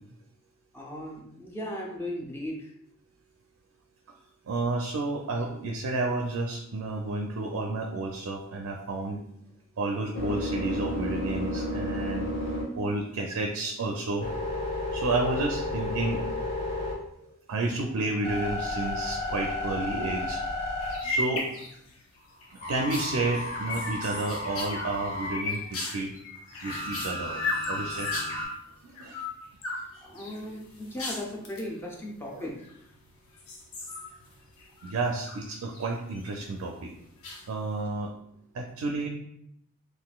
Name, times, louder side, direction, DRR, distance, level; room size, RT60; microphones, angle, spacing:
voice 1, 0.7-2.7 30.0-32.5, left 1 dB, 10° left, -2 dB, 0.5 m, -37 dB
voice 2, 4.5-9.2 9.8-12.3 12.8-14.3 14.9-16.2 17.5-20.4 21.0-21.5 22.7-26.1 26.6-28.1 28.8-29.2 32.3-32.5 34.8-36.9 37.5-38.1 38.5-39.1, right 2 dB, 85° right, 2 dB, 0.4 m, -31 dB
sound 1, 9.8-13.3 13.8-17.3 17.8-21.5 22.6-25.4 26.6-28.5, left 1 dB, 50° left, 1.0 m, -33 dB
sound 2, 20.8-22.0 22.4-28.5 28.9-29.8 30.2-31.7 32.5-33.0 33.4-35.4 35.7-36.3 37.2-37.8, left 2 dB, 85° left, 0.7 m, -35 dB
3.7 x 2.5 x 2.3 m, 0.74 s
head